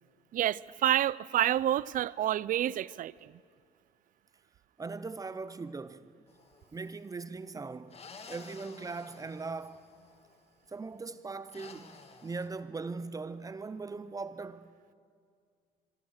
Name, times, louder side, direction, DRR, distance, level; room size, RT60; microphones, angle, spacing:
voice 1, 0.3-3.1, right 12 dB, 55° right, 0.5 m, -28 dB
voice 2, 4.8-6.1 6.7-8.0 8.3-9.9 10.7-14.7, right 4 dB, 20° right, 0.7 m, -40 dB
sound 1, 6.3-6.8 7.9-10.3 11.5-12.5, left 4 dB, 35° left, 2.3 m, -52 dB
24.5 x 24.0 x 6.5 m
cardioid pair, 110°, 17 cm